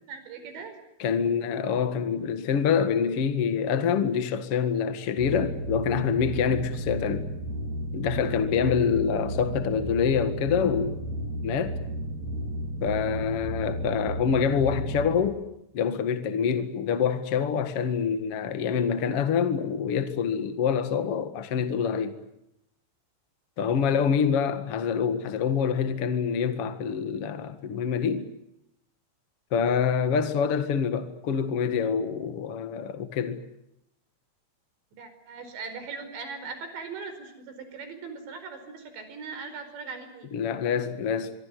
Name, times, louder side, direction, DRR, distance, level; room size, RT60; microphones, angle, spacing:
voice 1, 0.1-0.8 35.0-40.3, right 5 dB, 60° right, 6.9 m, -39 dB
voice 2, 1.0-7.3 7.9-11.0 11.4-11.7 12.8-15.4 15.7-22.2 23.6-28.3 29.5-33.4 40.3-41.3, left 7 dB, 70° left, 1.3 m, -26 dB
sound 1, 5.2-15.2, right 1 dB, 35° right, 4.7 m, -33 dB
25.0 x 24.0 x 9.3 m
omnidirectional pair, 5.9 m